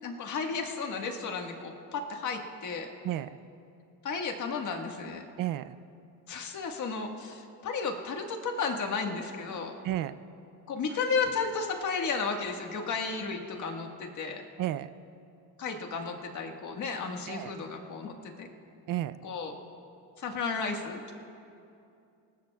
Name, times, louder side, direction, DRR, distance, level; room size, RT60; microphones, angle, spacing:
voice 1, 0.0-2.9 4.0-5.3 6.3-9.7 10.7-14.4 15.6-18.5 19.2-19.6 20.2-21.1, left 4 dB, 45° left, 2 dB, 1.6 m, -33 dB
voice 2, 3.0-3.4 5.4-5.8 9.8-10.1 14.6-14.9 17.3-17.5 18.9-19.2, right 13 dB, 55° right, 13 dB, 0.5 m, -32 dB
25.0 x 19.5 x 2.3 m, 2.6 s
cardioid pair, 135°, 40 cm